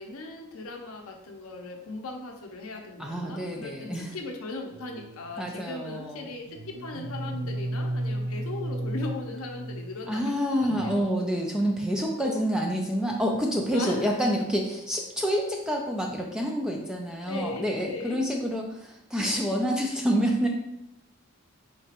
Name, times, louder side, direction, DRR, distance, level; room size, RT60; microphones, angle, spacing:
voice 1, 0.0-11.3 12.2-12.5 13.7-14.1 17.1-18.2, left 2 dB, 75° left, 3 dB, 0.6 m, -38 dB
voice 2, 3.0-4.1 5.4-6.3 10.1-20.5, equal, 5° right, 0 dB, 0.3 m, -28 dB
sound 1, 4.7-5.5 6.5-10.2 10.6-11.0, right 1 dB, 75° right, 0.4 m, -34 dB
4.5 x 2.9 x 2.8 m, 0.86 s
head